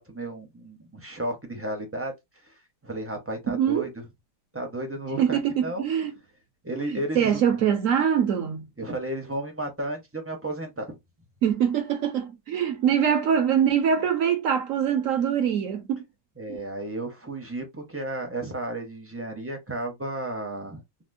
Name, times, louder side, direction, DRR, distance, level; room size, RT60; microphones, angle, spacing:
voice 1, 0.0-2.1 2.4-2.5 2.8-4.0 4.5-5.9 6.6-7.4 8.8-11.0 16.4-20.8, right 1 dB, 15° right, 0.4 m, -33 dB
voice 2, 3.5-3.9 5.2-6.1 6.9-8.7 11.4-16.0 16.5-16.6, right 8 dB, 65° right, 0.8 m, -23 dB
4.2 x 2.0 x 2.5 m
omnidirectional pair, 1.8 m